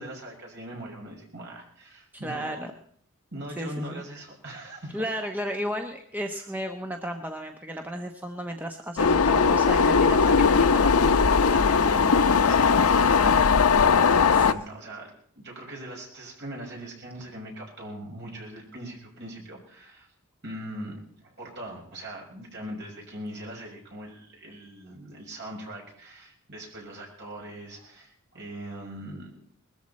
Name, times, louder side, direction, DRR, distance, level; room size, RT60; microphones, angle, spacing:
voice 1, 0.0-2.6 3.3-5.0 11.5-13.1 14.2-20.1 20.4-29.3, right 1 dB, 50° right, -1 dB, 6.1 m, -40 dB
voice 2, 2.2-2.7 3.6-4.0 4.9-11.5 14.3-14.5, equal, 10° right, 4 dB, 1.0 m, -34 dB
sound 1, 9.0-14.5, left 5 dB, 80° left, 0.7 m, -19 dB
20.5 x 14.0 x 4.3 m, 0.63 s
head